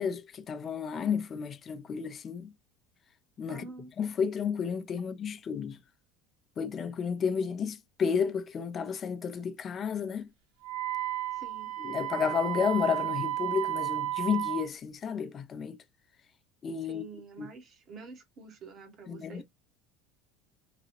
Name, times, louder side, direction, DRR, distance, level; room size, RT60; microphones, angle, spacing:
voice 1, 0.0-2.5 3.4-3.7 4.0-5.8 6.6-10.3 11.8-15.8 16.6-17.0 17.4-17.5 19.1-19.4, left 6 dB, 40° left, 0.6 m, -32 dB
voice 2, 3.5-3.9 11.3-11.7 16.9-19.4, right 4 dB, 45° right, 1.2 m, -47 dB
Wind instrument woodwind instrument, 10.6-14.7, right 14 dB, 70° right, 1.0 m, -33 dB
4.0 x 2.3 x 3.0 m
hypercardioid pair, 80°, 0 cm